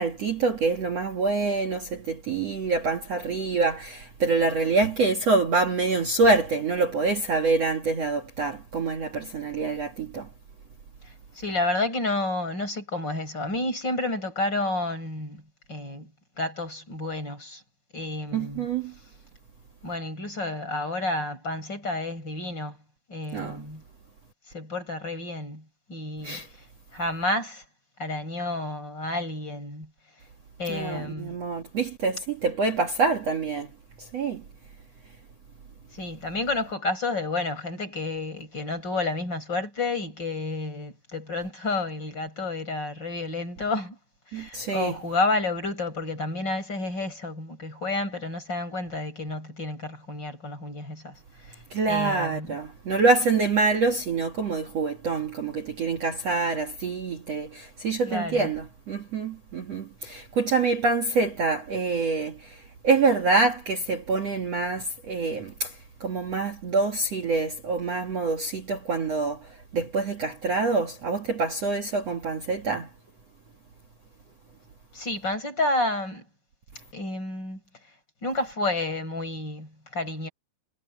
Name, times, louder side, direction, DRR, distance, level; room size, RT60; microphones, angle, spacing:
voice 1, 0.0-10.3 18.3-18.9 23.3-23.6 26.2-26.5 30.7-33.7 34.0-34.4 44.3-45.0 51.7-72.9, right 3 dB, 50° right, 2.0 m, -26 dB
voice 2, 11.0-15.4 15.7-16.1 16.4-17.6 17.9-18.7 19.8-22.8 23.1-23.8 24.5-26.4 26.9-27.6 28.0-29.9 30.6-31.4 35.9-44.0 44.3-51.1 51.4-51.6 51.9-52.6 58.0-58.5 74.9-76.2 76.9-77.6 78.2-80.3, left 2 dB, 20° left, 7.1 m, -30 dB
omnidirectional pair, 5.5 m